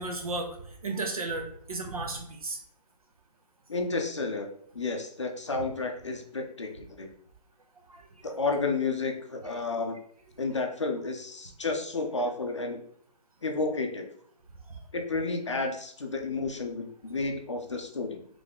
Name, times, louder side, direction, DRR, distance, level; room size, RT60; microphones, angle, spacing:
voice 1, 0.0-2.6 7.9-8.1 14.7-14.8, right 3 dB, 55° right, 3 dB, 1.0 m, -34 dB
voice 2, 3.7-4.5 4.7-7.1 8.2-10.0 10.4-12.8 13.4-14.1 14.9-18.3, left 3 dB, 45° left, 3 dB, 0.5 m, -31 dB
3.6 x 3.3 x 3.6 m, 0.65 s
hypercardioid pair, 180°, 21 cm